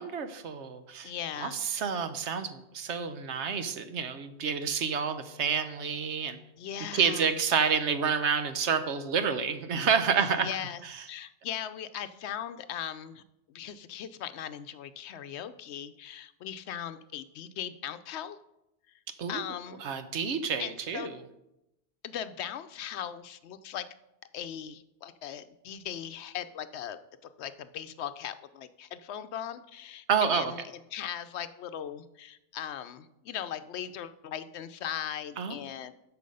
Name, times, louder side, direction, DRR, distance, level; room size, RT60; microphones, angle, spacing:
voice 1, 0.0-1.1 1.4-6.4 6.9-10.5 19.2-19.4 19.8-21.1 30.1-30.5 35.4-35.6, right 6 dB, 75° right, 10 dB, 1.1 m, -29 dB
voice 2, 1.0-1.9 6.6-7.4 10.2-13.2 13.5-18.4 19.3-19.8 20.6-21.1 22.0-23.9 24.3-30.6 30.9-35.9, left 9 dB, 75° left, 12 dB, 0.8 m, -39 dB
13.0 x 4.9 x 5.4 m, 0.89 s
omnidirectional pair, 1.2 m